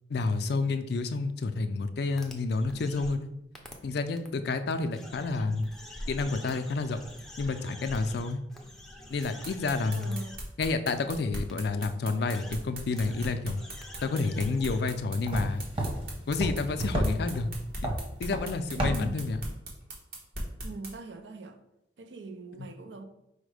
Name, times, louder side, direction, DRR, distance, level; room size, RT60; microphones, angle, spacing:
voice 1, 0.1-3.3 3.8-5.7 6.1-7.0 7.4-8.4 9.1-10.2 10.6-13.6 14.0-15.6 16.3-17.5 17.8-17.9 18.2-19.4, left 3 dB, 60° left, 0.4 m, -29 dB
sound 1, 2.2-3.1 3.5-3.7 4.2-4.3 4.9-10.4 10.9-11.0 11.5-11.6 12.2-12.5 12.9-14.8, left 1 dB, ahead, 0.5 m, -45 dB
sound 2, 9.2-20.9, right 1 dB, 55° right, 1.2 m, -39 dB
voice 2, 9.9-10.4 18.7-19.2 20.6-21.6 22.0-23.0, right 3 dB, 75° right, 0.5 m, -42 dB
sound 3, 14.3-19.5, equal, 30° right, 1.0 m, -34 dB
4.9 x 2.1 x 4.8 m
head